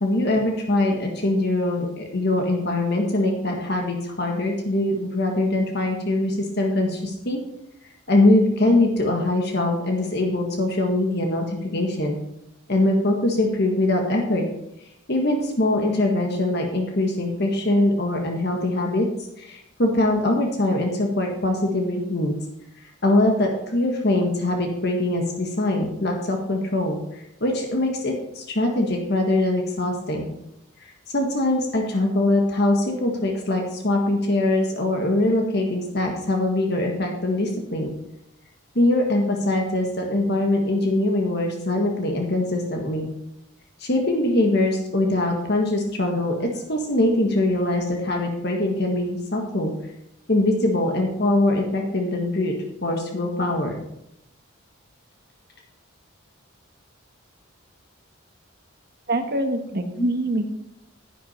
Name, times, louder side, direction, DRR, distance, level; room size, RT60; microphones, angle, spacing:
voice 1, 0.0-7.4 8.1-12.2 12.7-14.4 15.1-19.1 19.4-22.3 22.8-30.3 30.8-37.9 38.7-43.1 43.8-49.7 50.3-52.6 52.8-53.8, left 1 dB, 50° left, 2 dB, 1.5 m, -22 dB
voice 2, 59.1-60.5, right 1 dB, 45° right, 6 dB, 1.3 m, -24 dB
11.0 x 10.5 x 4.3 m, 0.80 s
head